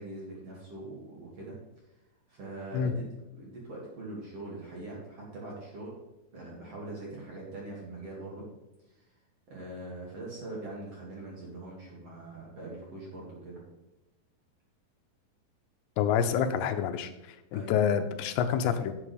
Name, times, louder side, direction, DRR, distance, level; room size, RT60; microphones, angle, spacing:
voice 1, 0.0-1.5 2.3-3.0 3.3-5.9 6.3-8.4 8.9-9.0 9.5-13.6 17.5-17.7, right 2 dB, 45° right, -4 dB, 2.5 m, -42 dB
voice 2, 16.0-17.1 17.5-18.9, left 8 dB, 90° left, 8 dB, 2.8 m, -27 dB
10.5 x 8.3 x 3.3 m, 0.97 s
omnidirectional pair, 5.0 m